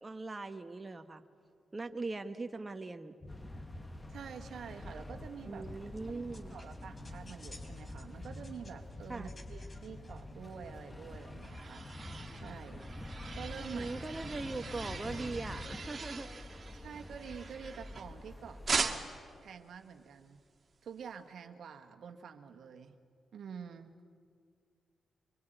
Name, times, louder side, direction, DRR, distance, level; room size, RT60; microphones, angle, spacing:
voice 1, 0.0-1.2 1.7-3.1 5.5-6.6 9.1-9.3 13.7-16.3, right 3 dB, 30° right, 7 dB, 1.3 m, -40 dB
sound 1, 3.2-15.9, left 1 dB, 30° left, 4.3 m, -48 dB
sound 2, 3.3-18.8, left 1 dB, 15° left, 1.6 m, -50 dB
voice 2, 4.1-5.7 6.1-12.9 13.3-14.0 16.7-19.0 19.4-20.4 20.8-22.9 23.3-24.0, right 7 dB, 75° right, 5 dB, 1.6 m, -48 dB
sound 3, 10.9-18.2 18.7-19.3, right 4 dB, 50° right, 2.2 m, -40 dB
25.0 x 23.5 x 9.2 m, 2.2 s
supercardioid pair, 55°, 0 cm